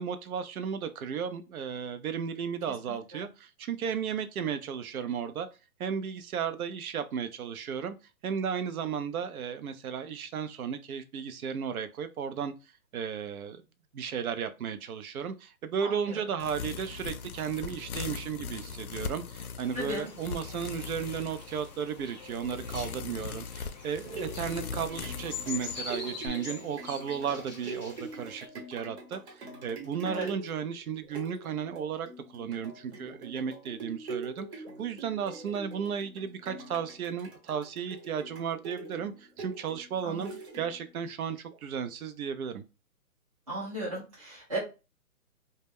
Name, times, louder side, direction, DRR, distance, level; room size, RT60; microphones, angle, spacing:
voice 1, 0.0-5.5 5.8-8.0 8.2-12.5 12.9-13.6 13.9-42.6, right 7 dB, 75° right, 0.5 m, -34 dB
voice 2, 15.8-16.2 19.7-20.1 30.0-30.3 40.0-40.2 43.5-44.6, right 1 dB, 25° right, 0.5 m, -35 dB
sound 1, 16.4-26.3, left 5 dB, 80° left, 0.5 m, -40 dB
sound 2, 19.6-28.5, left 4 dB, 30° left, 0.4 m, -44 dB
sound 3, 24.0-41.0 41.5-41.6, right 3 dB, 45° right, 0.8 m, -44 dB
2.2 x 2.1 x 3.3 m
hypercardioid pair, 160°, 44 cm